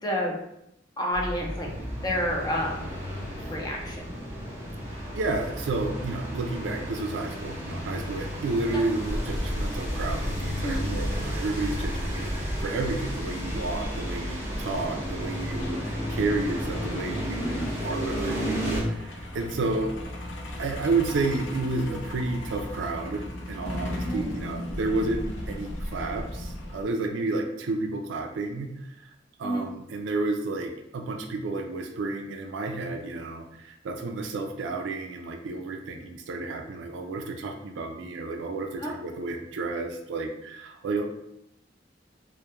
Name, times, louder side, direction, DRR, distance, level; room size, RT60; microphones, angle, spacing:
voice 1, 0.0-0.4 1.0-1.7 2.0-2.9 3.4-4.1 8.7-8.8 10.6-10.9 17.4-17.7 24.1-24.3 29.4-29.7 38.8-38.9, equal, 20° left, -1 dB, 0.5 m, -29 dB
sound 1, 1.1-18.8, equal, 15° right, 0.6 m, -33 dB
voice 2, 4.9-20.0 20.6-29.1 29.4-41.1, right 3 dB, 85° right, 4 dB, 0.4 m, -31 dB
Truck, 9.1-26.8, equal, 75° left, 0.5 m, -35 dB
2.2 x 2.1 x 2.9 m, 0.81 s
head